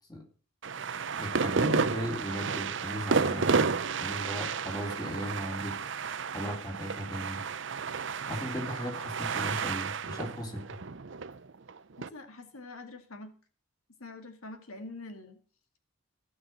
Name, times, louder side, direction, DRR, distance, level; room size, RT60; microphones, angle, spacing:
sound 1, 0.6-12.1, right 5 dB, 60° right, 0.7 m, -31 dB
voice 1, 1.1-5.8 6.3-7.4 8.3-10.8, equal, 20° left, 2 dB, 3.5 m, -36 dB
voice 2, 12.0-13.3 14.0-15.4, left 2 dB, 90° left, 6 dB, 2.0 m, -45 dB
15.5 x 5.9 x 7.6 m, 0.39 s
head